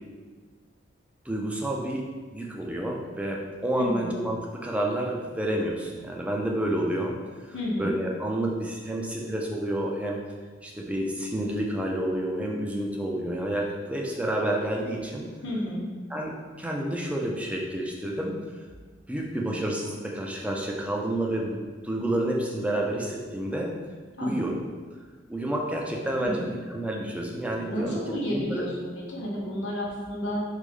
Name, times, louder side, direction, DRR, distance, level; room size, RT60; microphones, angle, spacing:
voice 1, 1.3-2.1 2.3-7.2 7.4-10.2 10.6-15.3 16.1-18.4 19.1-23.8 24.2-24.6 25.3-28.0 28.3-28.6, right 1 dB, 5° right, -1 dB, 0.3 m, -29 dB
voice 2, 3.7-4.1 7.5-8.0 15.4-15.9 24.2-24.5 26.2-26.5 27.7-30.4, equal, 75° left, -3 dB, 0.8 m, -31 dB
3.1 x 2.0 x 3.6 m, 1.5 s
head